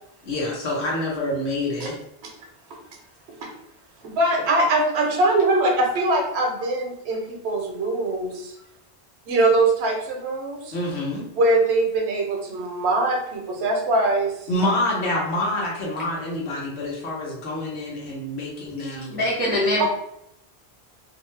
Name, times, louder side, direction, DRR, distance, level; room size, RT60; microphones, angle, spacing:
voice 1, 0.2-2.0 10.7-11.2 14.5-19.2, left 1 dB, 80° left, -3 dB, 1.1 m, -27 dB
voice 2, 4.0-8.5 9.3-10.7 11.3-14.5 19.8-19.9, right 2 dB, 80° right, 2 dB, 0.9 m, -22 dB
voice 3, 18.8-19.9, left 1 dB, 15° right, -4 dB, 0.3 m, -24 dB
2.6 x 2.1 x 3.1 m, 0.76 s
omnidirectional pair, 1.1 m